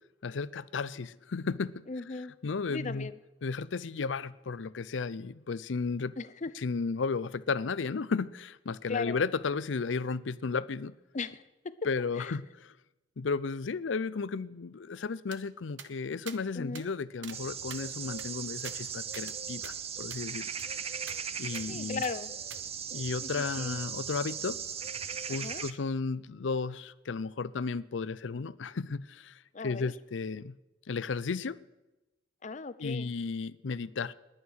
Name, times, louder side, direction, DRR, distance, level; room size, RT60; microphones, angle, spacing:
voice 1, 0.2-1.8 2.4-3.1 3.4-6.1 6.5-10.9 11.8-12.7 13.2-20.5 21.4-22.0 22.9-24.6 25.3-30.6 30.9-31.6 32.8-34.1, left 4 dB, 85° left, 0.5 m, -34 dB
voice 2, 1.9-2.3 2.7-3.2 6.2-6.5 8.9-9.2 11.1-11.4 12.2-12.4 16.5-16.9 21.7-22.3 23.2-23.8 25.3-25.6 29.5-29.9 32.4-33.1, left 4 dB, 40° left, 0.6 m, -37 dB
sound 1, 15.3-15.4 15.8-15.9 16.3-16.4 16.8-16.9 17.2-17.4 17.7-19.4 19.6-19.7 20.1-20.2 20.6-20.7 21.1-21.2 21.5-21.7 22.0-22.1 22.5-22.6, right 8 dB, 80° right, 1.0 m, -46 dB
sound 2, 17.3-25.7, right 7 dB, 35° right, 0.7 m, -38 dB
20.5 x 8.9 x 6.4 m
head